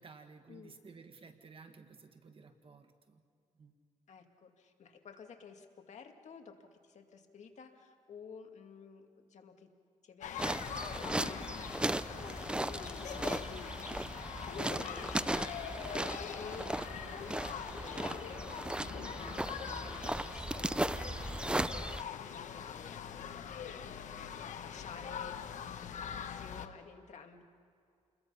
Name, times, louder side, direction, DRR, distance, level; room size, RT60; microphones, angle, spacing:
voice 1, 0.0-3.2 3.5-3.7, right 4 dB, 50° right, 7 dB, 1.7 m, -55 dB
voice 2, 4.1-9.7 10.0-23.8 24.2-25.5 25.8-27.4, left 6 dB, 70° left, 4 dB, 2.2 m, -53 dB
sound 1, 10.2-26.7, left 8 dB, 90° left, 1.1 m, -43 dB
sound 2, 10.4-22.0, right 1 dB, 10° right, 0.5 m, -37 dB
sound 3, 19.1-25.4, right 3 dB, 75° right, 5.8 m, -69 dB
29.5 x 21.0 x 5.6 m, 2.4 s
cardioid pair, 95°, 12 cm